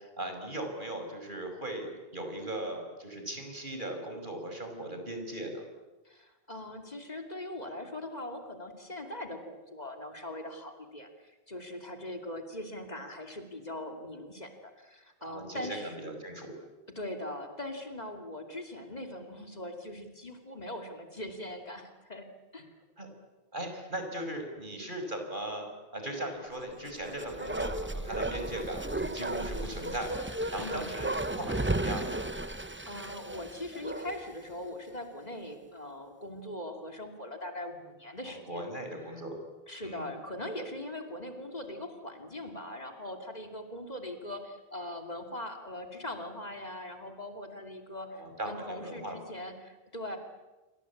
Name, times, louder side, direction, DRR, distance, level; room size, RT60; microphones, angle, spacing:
voice 1, 0.0-5.6 15.2-16.5 23.0-23.1 23.5-32.3 38.2-39.4 39.8-40.1 48.1-49.2, right 1 dB, 50° right, 4 dB, 5.8 m, -38 dB
voice 2, 6.0-15.9 16.9-22.3 22.5-22.7 30.6-31.0 32.9-38.6 39.7-50.2, left 1 dB, 40° left, 4 dB, 2.9 m, -41 dB
Bark, 26.8-34.4 34.7-34.8, right 1 dB, 10° right, 0.8 m, -34 dB
28.5 x 24.5 x 8.6 m, 1.1 s
omnidirectional pair, 1.0 m